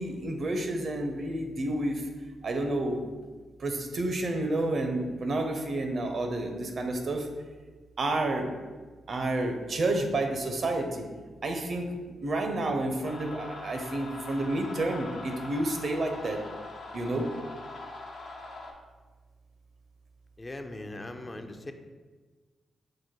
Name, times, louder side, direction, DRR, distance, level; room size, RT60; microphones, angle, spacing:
voice 1, 0.0-2.1 2.4-3.0 3.6-7.3 8.0-8.5 9.1-11.1 11.4-11.9 12.2-16.4 16.9-17.3, right 2 dB, 60° right, 4 dB, 0.6 m, -30 dB
sound 1, 13.0-18.7, left 3 dB, 75° left, 0.6 m, -42 dB
voice 2, 20.4-21.7, left 2 dB, 30° left, 6 dB, 0.4 m, -40 dB
4.8 x 2.1 x 4.3 m, 1.4 s
supercardioid pair, 40°, 0 cm